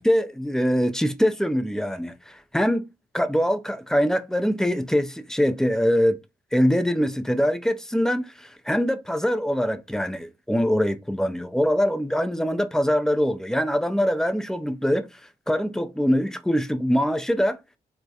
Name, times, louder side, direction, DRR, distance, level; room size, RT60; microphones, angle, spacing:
voice 1, 0.0-2.8 3.1-6.2 6.5-15.1 15.5-17.6, equal, 5° left, 0.3 m, -23 dB
2.3 x 2.0 x 2.7 m
cardioid pair, 65°, 18 cm